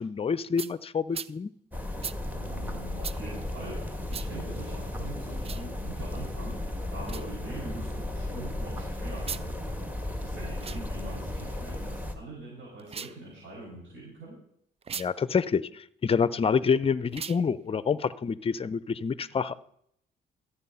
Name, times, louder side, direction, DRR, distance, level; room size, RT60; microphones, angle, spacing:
voice 1, 0.0-1.5 15.0-19.6, left 6 dB, 30° left, 17 dB, 0.6 m, -27 dB
sound 1, 0.6-0.7 1.1-1.3 2.0-2.2 3.0-3.2 4.1-4.3 5.4-5.6 7.0-7.3 9.2-9.5 10.5-10.8 12.8-13.2 14.8-15.1 17.1-17.4, right 6 dB, 30° right, 0.4 m, -38 dB
sound 2, 1.7-12.2, left 1 dB, 10° right, 1.7 m, -35 dB
voice 2, 2.3-14.4, right 2 dB, 70° right, -5 dB, 5.6 m, -43 dB
13.5 x 8.3 x 5.5 m, 0.70 s
cardioid pair, 90°, 20 cm